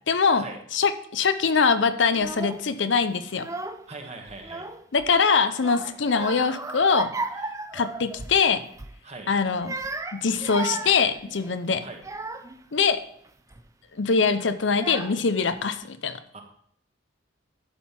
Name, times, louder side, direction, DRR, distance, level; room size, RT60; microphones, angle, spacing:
voice 1, 0.1-3.5 4.9-7.2 7.7-8.7 9.3-9.7 10.1-11.8 12.7-13.0 13.9-16.4, left 5 dB, 70° left, 11 dB, 0.7 m, -23 dB
Child speech kid speaking / Crying sobbing, 2.1-2.7 3.3-4.0 4.3-5.1 5.6-8.4 8.7-9.0 9.5-12.6 13.3-13.6 14.4-14.5 14.8-15.5, right 3 dB, 15° right, 0.5 m, -35 dB
voice 2, 3.9-4.6 9.0-9.3 11.8-12.0 16.3-16.4, right 3 dB, 35° right, 3 dB, 1.4 m, -40 dB
11.5 x 5.7 x 4.3 m, 0.66 s
head